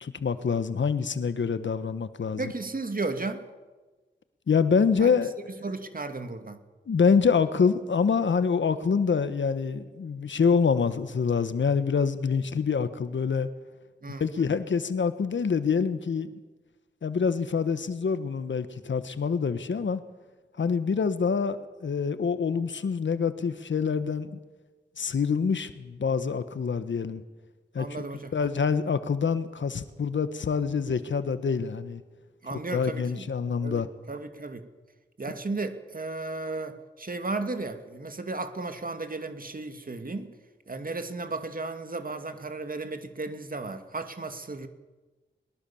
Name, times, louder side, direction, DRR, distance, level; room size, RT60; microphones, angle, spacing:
voice 1, 0.0-2.5 4.5-5.5 6.9-13.5 14.2-16.3 17.0-20.0 20.6-24.3 25.0-27.2 27.7-28.1 28.3-32.0 32.7-33.9, left 5 dB, 80° left, 12 dB, 1.4 m, -26 dB
voice 2, 2.4-3.4 5.0-5.1 5.6-6.6 14.0-14.5 27.8-28.3 32.4-33.3 33.6-34.7 35.2-40.3 40.7-44.7, right 3 dB, 50° right, 8 dB, 2.4 m, -34 dB
22.0 x 21.0 x 7.2 m, 1.2 s
cardioid pair, 60°, 19 cm